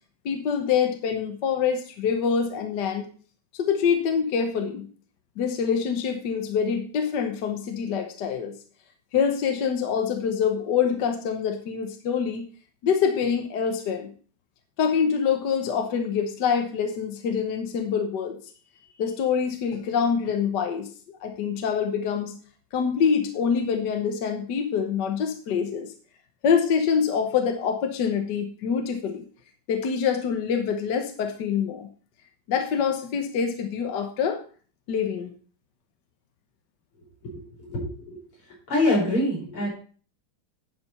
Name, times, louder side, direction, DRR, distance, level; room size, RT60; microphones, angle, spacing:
voice 1, 0.2-3.1 3.5-4.9 5.4-8.6 9.1-12.4 12.8-14.1 14.8-18.4 19.0-22.4 22.7-25.9 26.4-29.2 29.7-31.9 32.5-34.4 34.9-35.3, left 7 dB, 60° left, 5 dB, 1.5 m, -25 dB
voice 2, 37.6-38.2 38.7-39.7, left 1 dB, 80° left, -4 dB, 6.0 m, -24 dB
10.5 x 5.1 x 5.5 m, 0.42 s
omnidirectional pair, 2.4 m